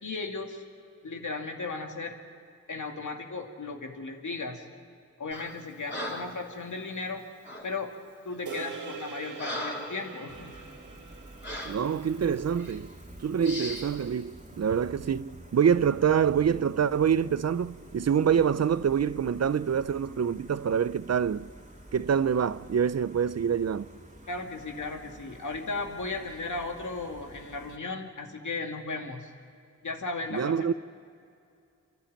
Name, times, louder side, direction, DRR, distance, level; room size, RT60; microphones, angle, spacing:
voice 1, 0.0-0.6 1.0-2.2 2.7-4.6 5.2-7.2 7.6-7.9 8.2-10.5 24.3-29.3 29.8-30.6, left 3 dB, 75° left, 2.4 m, -36 dB
Breathing, 5.3-5.6 5.9-6.4 7.4-7.7 8.4-8.6 9.0-10.0 10.5-10.6 11.4-11.8 12.6-12.8 13.4-13.9, left 1 dB, 35° left, 4.1 m, -38 dB
sound 1, 8.5-12.9, right 6 dB, 80° right, 1.6 m, -44 dB
Gull seagull, 10.3-27.8, right 1 dB, 25° right, 2.3 m, -49 dB
voice 2, 11.7-12.9 13.2-21.5 21.9-23.9 30.3-30.7, right 7 dB, 55° right, 0.6 m, -26 dB
29.5 x 12.0 x 8.8 m
wide cardioid pair, 70°, 30 cm